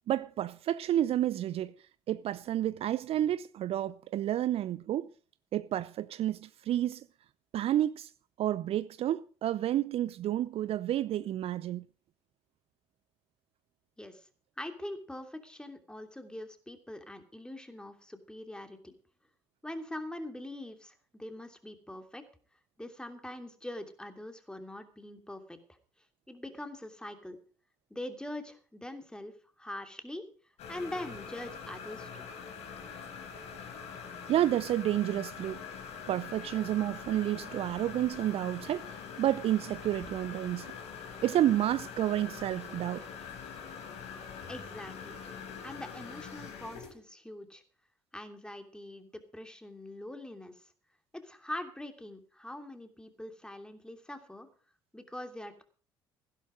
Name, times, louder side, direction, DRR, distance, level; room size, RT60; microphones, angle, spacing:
voice 1, 0.1-1.7 2.1-5.1 5.5-7.0 7.5-8.1 8.4-11.8 34.3-35.6 36.1-38.9 39.2-40.7 41.2-43.0, right 12 dB, 50° right, 0.6 m, -30 dB
voice 2, 14.6-18.9 19.6-22.2 22.8-25.6 26.3-27.4 27.9-30.2 30.7-32.2 44.5-45.1 45.6-47.6 48.1-50.6 51.1-54.5 54.9-55.6, left 1 dB, 5° left, 2.9 m, -43 dB
sound 1, 30.6-46.9, left 6 dB, 60° left, 3.8 m, -44 dB
16.0 x 11.5 x 5.1 m
hypercardioid pair, 55°, 13 cm